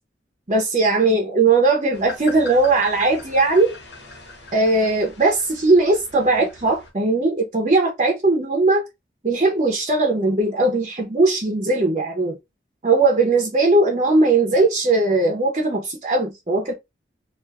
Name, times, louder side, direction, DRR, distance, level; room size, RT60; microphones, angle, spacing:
voice 1, 0.5-3.7 4.5-8.8 9.2-12.4 12.8-16.7, right 2 dB, 35° right, 0.7 m, -19 dB
sound 1, 1.9-6.9, left 3 dB, 75° left, 0.9 m, -41 dB
2.5 x 2.3 x 3.4 m
head